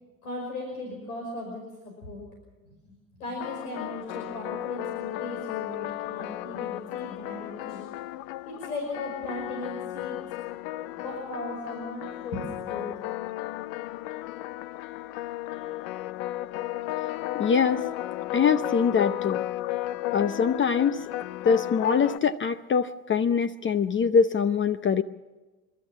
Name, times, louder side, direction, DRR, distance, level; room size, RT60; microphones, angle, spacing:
voice 1, 0.2-2.2 2.6-2.8 3.2-7.8 8.5-10.2 11.0-13.0, left 2 dB, 85° left, 0 dB, 5.6 m, -37 dB
sound 1, 3.4-22.2, left 15 dB, 65° left, 0.7 m, -34 dB
voice 2, 17.3-17.8 18.3-19.4 20.1-21.1 21.4-25.0, left 6 dB, 25° left, 13 dB, 0.8 m, -23 dB
29.0 x 13.0 x 7.3 m, 1.2 s
hypercardioid pair, 75°, 43 cm